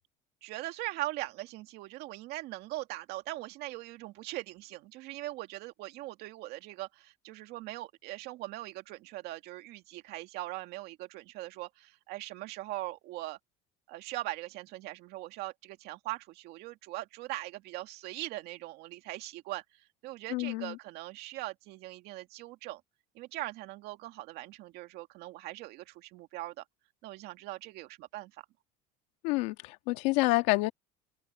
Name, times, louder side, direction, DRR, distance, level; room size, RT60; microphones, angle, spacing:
voice 1, 0.4-13.4 13.9-22.8 23.1-26.6 27.0-28.4, right 17 dB, 65° right, 2.3 m, -41 dB
voice 2, 20.3-20.8 29.2-30.7, left 22 dB, 80° left, 1.8 m, -28 dB
open air
cardioid pair, 130°, 18 cm